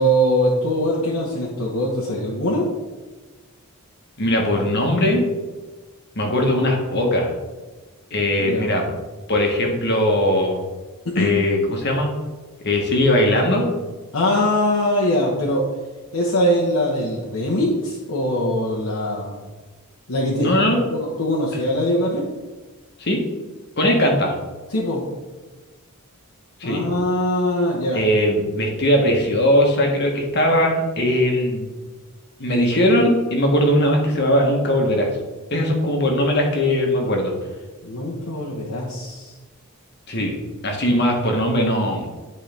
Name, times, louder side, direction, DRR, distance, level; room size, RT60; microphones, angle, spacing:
voice 1, 0.0-2.7 8.5-8.7 11.1-11.3 11.7-11.8 14.1-15.6 16.1-19.4 20.1-20.6 20.9-22.3 24.7-25.0 26.6-28.0 37.8-39.4, equal, 80° left, -5 dB, 1.2 m, -22 dB
voice 2, 4.2-5.2 6.1-7.3 8.1-8.8 9.3-10.6 11.1-12.1 12.6-13.7 20.4-20.9 23.0-23.2 23.8-24.3 26.6-26.8 27.9-31.7 32.4-35.1 35.5-37.3 40.1-40.3 40.6-42.0, left 1 dB, 50° left, 1 dB, 1.3 m, -19 dB
10.5 x 4.5 x 3.5 m, 1.3 s
head